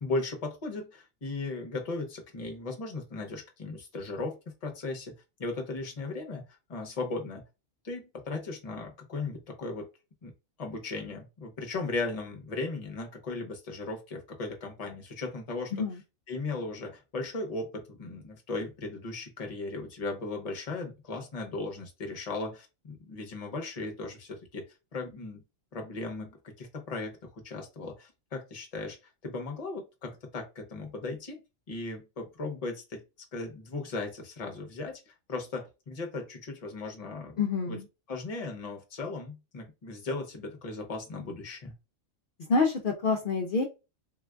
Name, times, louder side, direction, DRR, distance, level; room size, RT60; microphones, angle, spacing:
voice 1, 0.0-5.1 5.4-6.4 6.7-7.4 7.8-9.9 10.2-10.3 10.6-15.7 16.3-24.6 24.9-25.4 25.7-29.0 29.2-31.4 31.7-33.0 33.3-37.4 37.7-37.8 38.1-41.7, left 3 dB, 35° left, 3 dB, 0.7 m, -37 dB
voice 2, 37.4-37.9 42.5-43.6, left 4 dB, 65° left, 2 dB, 0.5 m, -27 dB
3.8 x 2.4 x 2.2 m, 0.28 s
omnidirectional pair, 1.3 m